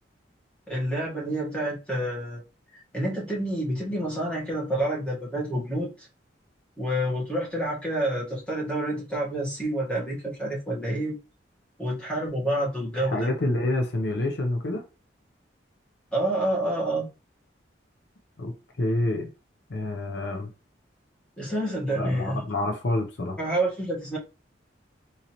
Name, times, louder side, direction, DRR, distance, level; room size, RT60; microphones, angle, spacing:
voice 1, 0.7-2.4 2.7-6.1 6.8-11.2 11.8-13.3 16.1-17.1 21.4-22.4 23.4-24.2, right 1 dB, 5° left, 1.4 m, -28 dB
voice 2, 12.9-14.8 18.4-18.5 18.8-19.3 19.7-20.5 22.0-23.4, left 1 dB, 65° left, 0.6 m, -27 dB
3.9 x 2.8 x 2.9 m
head